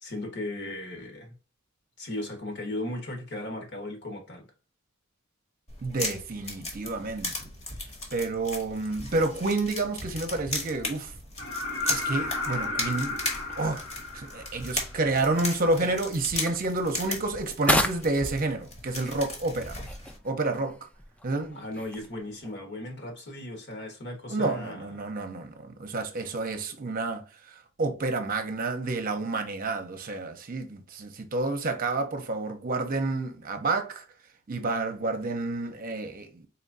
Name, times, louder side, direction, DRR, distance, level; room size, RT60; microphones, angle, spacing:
voice 1, 0.0-1.3 2.0-4.5 21.5-24.9, left 1 dB, 55° left, 1.4 m, -36 dB
sound 1, 5.7-20.2, left 2 dB, 30° left, 1.2 m, -37 dB
voice 2, 5.8-7.3 8.1-11.1 11.8-13.2 13.6-13.8 14.1-19.8 20.2-20.8 21.2-21.6 24.3-27.2 27.8-34.0 34.5-36.4, right 2 dB, 45° right, 0.8 m, -29 dB
sound 2, 11.4-15.2 17.1-17.2, left 3 dB, 85° left, 1.3 m, -33 dB
sound 3, 13.3-22.5, left 1 dB, 5° left, 0.4 m, -35 dB
4.2 x 3.1 x 2.7 m
head